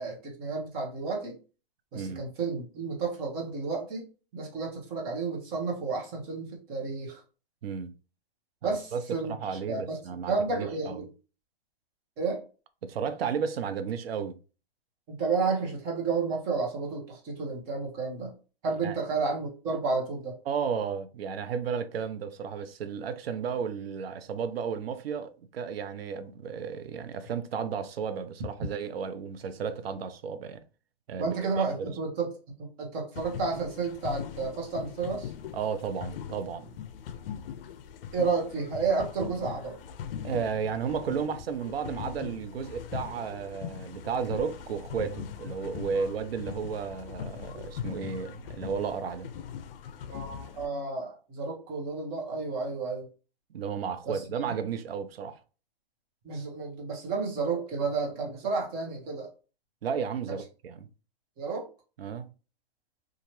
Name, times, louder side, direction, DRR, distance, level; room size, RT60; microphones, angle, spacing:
voice 1, 0.0-1.4 1.9-4.1 4.3-7.2 8.6-10.0 10.3-11.1 12.2-12.4 15.1-18.3 18.6-20.4 31.2-32.3 32.6-35.3 38.1-39.8 45.9-46.1 50.1-53.1 54.1-54.6 56.2-59.3 60.3-60.4 61.4-61.7, right 4 dB, 30° right, 0.9 m, -31 dB
voice 2, 7.6-7.9 8.6-9.0 9.3-11.1 12.8-14.4 18.8-18.9 20.5-30.6 31.1-31.9 35.5-36.7 40.2-49.3 53.5-55.4 59.8-60.9 62.0-62.3, right 6 dB, 80° right, 0.5 m, -33 dB
sound 1, 33.2-50.7, left 8 dB, 70° left, 0.5 m, -40 dB
2.8 x 2.4 x 2.9 m
hypercardioid pair, 140°, 30 cm